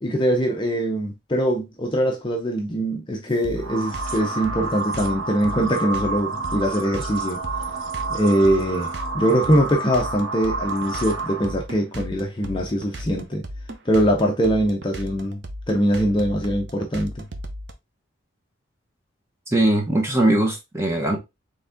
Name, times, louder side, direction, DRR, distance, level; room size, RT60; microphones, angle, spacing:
voice 1, 0.0-7.4 8.1-13.4 13.9-15.4 15.7-17.3, equal, 25° left, 0.6 m, -22 dB
sound 1, 3.4-17.7, equal, 55° right, 0.7 m, -35 dB
sound 2, 3.6-11.6, right 3 dB, 90° right, 1.0 m, -30 dB
voice 2, 19.5-21.2, right 1 dB, 15° right, 1.0 m, -20 dB
4.1 x 3.4 x 3.5 m
head